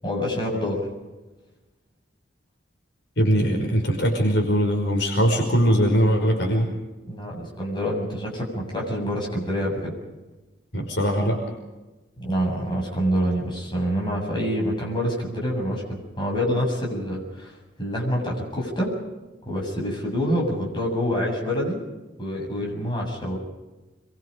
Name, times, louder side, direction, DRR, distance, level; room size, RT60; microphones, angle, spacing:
voice 1, 0.0-0.9 7.1-9.9 12.2-17.5 17.8-18.9 19.5-21.8 22.2-23.4, equal, 25° left, -2 dB, 7.6 m, -26 dB
voice 2, 3.2-6.7 10.7-11.5, equal, 65° left, 1 dB, 5.3 m, -21 dB
27.5 x 23.0 x 5.2 m, 1.1 s
head